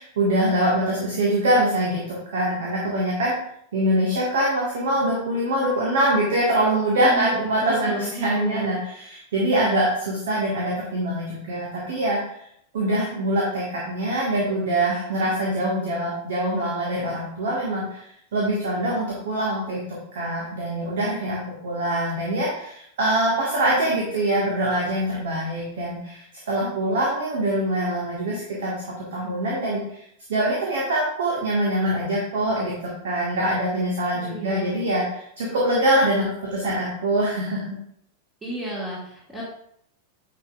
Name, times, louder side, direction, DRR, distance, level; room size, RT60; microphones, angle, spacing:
voice 1, 0.0-3.3 3.7-12.4 12.7-28.7 29.1-30.0 30.3-37.8, right 1 dB, 60° right, -4 dB, 1.8 m, -24 dB
voice 2, 7.0-8.7 34.1-34.8 38.4-39.4, right 1 dB, 15° right, -7 dB, 2.0 m, -32 dB
10.0 x 5.1 x 2.5 m, 0.70 s
figure-of-eight pair, 90°, 0 cm